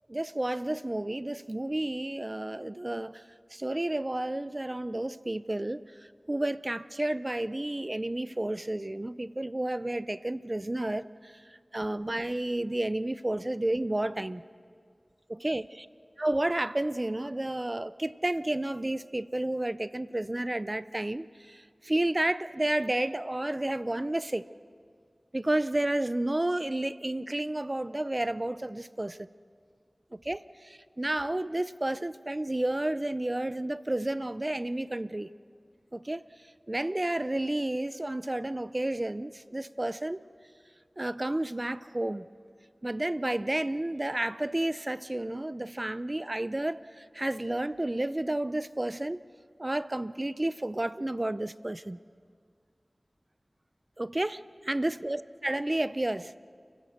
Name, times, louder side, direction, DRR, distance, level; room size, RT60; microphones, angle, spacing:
voice 1, 0.1-3.2 3.5-5.8 6.3-14.4 15.3-15.9 16.2-24.5 25.3-29.3 30.1-35.3 35.9-36.2 36.7-40.2 41.0-42.3 42.8-49.2 49.6-52.0 54.0-56.3, right 1 dB, 35° right, 0.6 m, -31 dB
29.5 x 16.0 x 6.4 m
wide cardioid pair, 50°, 0 cm